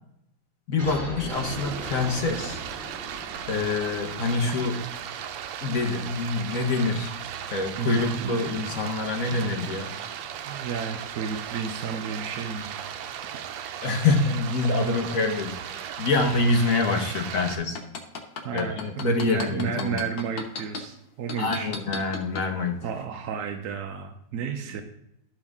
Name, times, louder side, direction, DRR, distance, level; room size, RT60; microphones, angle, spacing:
voice 1, 0.7-2.6 3.5-4.9 5.6-7.1 7.5-9.9 13.8-17.8 18.5-20.0 21.4-22.9 24.7-24.8, left 3 dB, 50° left, 3 dB, 1.3 m, -26 dB
sound 1, 0.8-5.8, right 1 dB, 35° right, 2.4 m, -40 dB
Stream, 1.3-17.6, right 9 dB, 85° right, 1.4 m, -36 dB
voice 2, 7.7-8.5 10.5-12.8 15.1-15.2 18.4-21.7 22.8-24.8, right 6 dB, 65° right, 4 dB, 1.1 m, -32 dB
sound 2, 17.6-20.8 21.3-22.4 22.9-23.0, left 5 dB, 80° left, 1.8 m, -34 dB
11.5 x 5.7 x 3.6 m, 0.81 s
omnidirectional pair, 2.0 m